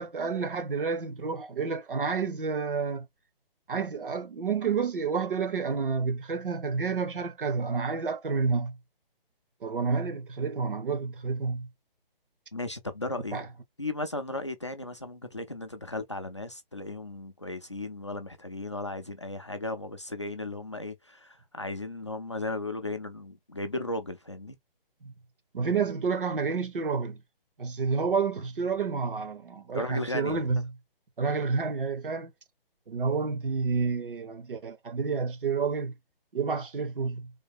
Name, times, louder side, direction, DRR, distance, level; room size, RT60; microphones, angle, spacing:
voice 1, 0.0-3.1 3.7-8.8 9.6-11.7 13.3-13.5 25.0-25.1 25.5-27.2 27.6-30.7 31.2-32.3 32.9-35.9 36.3-37.3, right 5 dB, 65° right, 1.1 m, -29 dB
voice 2, 12.5-13.4 13.8-24.6 29.7-30.6, left 2 dB, 30° left, 0.4 m, -36 dB
3.5 x 2.2 x 3.4 m
hypercardioid pair, 175°, 29 cm